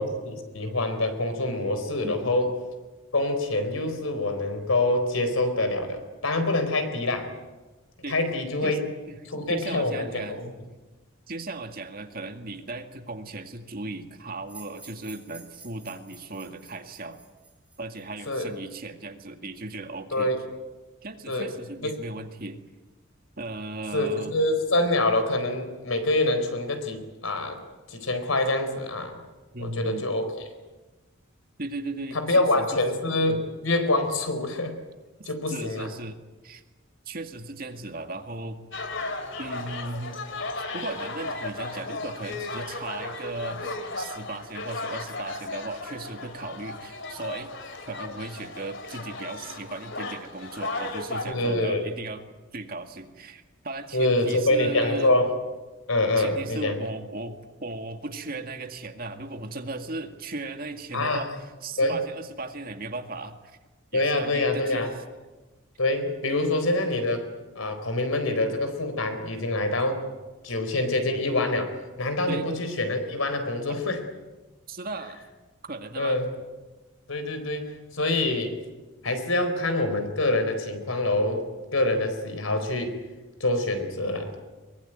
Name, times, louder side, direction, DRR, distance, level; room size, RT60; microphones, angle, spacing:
voice 1, 0.0-2.5 3.1-7.3 8.1-8.8 9.3-10.5 18.3-18.5 20.1-20.4 21.3-21.5 21.8-21.9 23.9-27.6 27.9-29.2 29.6-30.4 32.1-34.8 35.3-35.9 51.2-51.8 53.9-55.3 55.9-56.8 60.9-61.2 61.8-62.0 63.9-64.9 65.8-67.3 67.6-70.0 70.4-71.7 72.0-74.0 76.0-76.3 77.1-78.6 79.0-81.4 81.7-83.0 83.4-84.4, left 2 dB, 85° left, 7 dB, 4.2 m, -25 dB
voice 2, 9.5-10.4 11.3-17.2 17.8-20.3 21.0-22.6 23.4-24.3 29.5-30.1 31.6-32.8 35.5-36.2 36.4-36.6 37.1-38.6 39.4-40.2 40.7-47.5 47.9-52.2 52.5-55.1 56.2-63.6 63.9-64.9 72.3-72.5 74.7-75.2 75.7-76.2, right 2 dB, 45° right, 6 dB, 2.0 m, -37 dB
sound 1, 14.5-18.5, right 3 dB, 5° right, 3.9 m, -51 dB
sound 2, 38.7-51.3, left 2 dB, 60° left, 2.8 m, -35 dB
23.0 x 21.5 x 9.1 m, 1.2 s
head